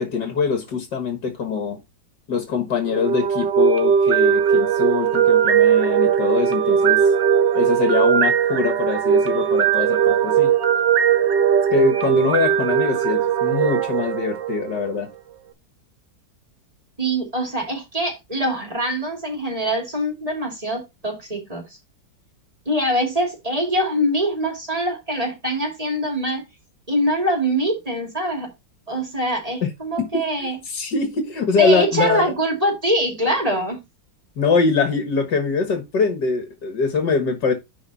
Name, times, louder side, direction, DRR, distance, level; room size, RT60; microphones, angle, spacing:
voice 1, 0.0-1.8 2.3-7.1 7.5-10.5 11.7-15.1 29.6-29.7 30.4-32.3 34.4-37.5, left 5 dB, 70° left, 2.2 m, -23 dB
sound 1, 2.9-15.0, right 8 dB, 75° right, 1.7 m, -19 dB
voice 2, 17.0-21.6 22.7-26.4 26.9-28.5 28.9-30.6 31.6-33.8, right 1 dB, 20° right, 2.6 m, -23 dB
10.5 x 4.3 x 4.1 m
omnidirectional pair, 2.0 m